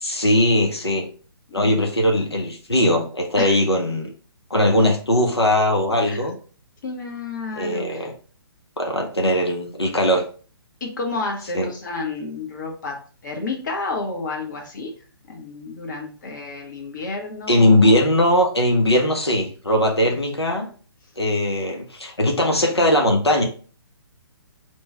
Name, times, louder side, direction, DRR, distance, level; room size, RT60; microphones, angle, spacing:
voice 1, 0.0-1.1 1.5-4.1 4.5-6.3 7.6-8.1 8.8-10.2 11.5-11.7 17.5-20.7 21.2-23.4, left 1 dB, 85° left, 1 dB, 0.8 m, -19 dB
voice 2, 1.6-2.1 3.4-3.5 6.0-6.3 6.8-8.1 10.8-14.9 15.3-18.0 20.0-20.1, left 3 dB, 50° left, 3 dB, 0.9 m, -31 dB
3.1 x 2.2 x 4.0 m, 0.40 s
figure-of-eight pair, 135°, 13 cm